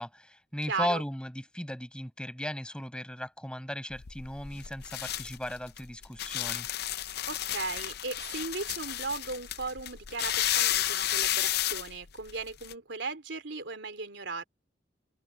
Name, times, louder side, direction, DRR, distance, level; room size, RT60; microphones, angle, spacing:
voice 1, 0.0-6.7, left 1 dB, 5° left, 6.8 m, -36 dB
voice 2, 0.7-1.0 7.3-14.4, right 4 dB, 75° right, 3.2 m, -37 dB
sound 1, 3.9-12.7, left 13 dB, 60° left, 0.6 m, -32 dB
head